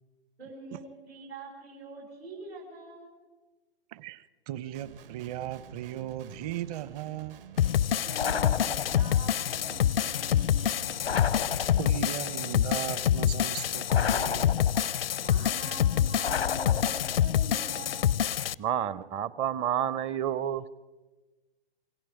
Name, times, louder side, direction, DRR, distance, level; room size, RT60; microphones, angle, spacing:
voice 1, 0.4-3.1 8.1-10.9 15.2-18.1, right 3 dB, 85° right, -3 dB, 7.8 m, -44 dB
voice 2, 3.9-7.4 11.8-14.7, right 12 dB, 40° right, 17 dB, 1.0 m, -37 dB
Guitar, 4.7-11.9, right 9 dB, 60° right, 1.6 m, -49 dB
sound 1, 7.6-18.5, left 10 dB, 70° left, 0.6 m, -27 dB
sound 2, 8.2-9.2 11.0-12.1 13.9-15.1 16.2-17.3, left 7 dB, 90° left, 1.0 m, -32 dB
voice 3, 18.6-20.8, right 10 dB, 20° right, 18 dB, 0.6 m, -30 dB
28.0 x 23.5 x 5.1 m, 1.2 s
hypercardioid pair, 120°, 30 cm